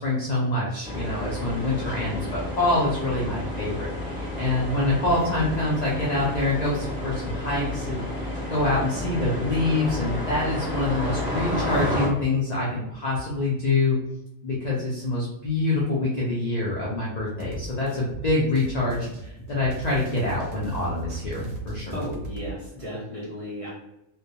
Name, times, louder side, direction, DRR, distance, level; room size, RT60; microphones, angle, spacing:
voice 1, 0.0-14.0 14.4-22.0, left 2 dB, 75° left, -5 dB, 0.3 m, -26 dB
sound 1, 0.8-12.1, left 1 dB, 10° left, 1.0 m, -31 dB
sound 2, 17.4-22.6, right 2 dB, 75° right, 0.9 m, -38 dB
voice 2, 21.9-23.7, equal, 35° right, -7 dB, 0.5 m, -34 dB
2.2 x 2.2 x 2.7 m, 0.86 s
omnidirectional pair, 1.4 m